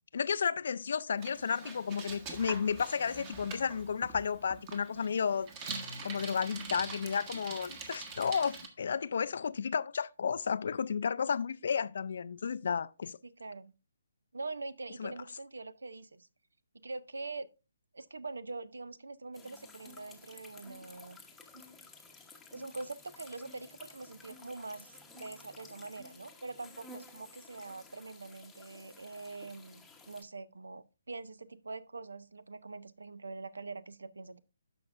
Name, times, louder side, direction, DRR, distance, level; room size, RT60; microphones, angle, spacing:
voice 1, 0.1-5.5 6.0-13.2 15.0-15.1, left 6 dB, 55° left, 0.4 m, -32 dB
Bicycle, 1.2-8.7, right 4 dB, 25° right, 1.3 m, -44 dB
voice 2, 13.2-13.7 14.3-16.3 16.7-17.5 17.9-21.2 22.5-34.4, right 3 dB, 70° right, 0.5 m, -44 dB
sound 1, 19.3-30.2, left 3 dB, 5° left, 0.9 m, -54 dB
sound 2, 19.8-20.1 20.7-20.9 21.5-21.8 22.5-22.8 23.4-23.7 24.3-24.5 25.1-25.4 26.0-26.3, equal, 40° right, 3.1 m, -56 dB
12.5 x 5.3 x 2.5 m
figure-of-eight pair, 140°, 0 cm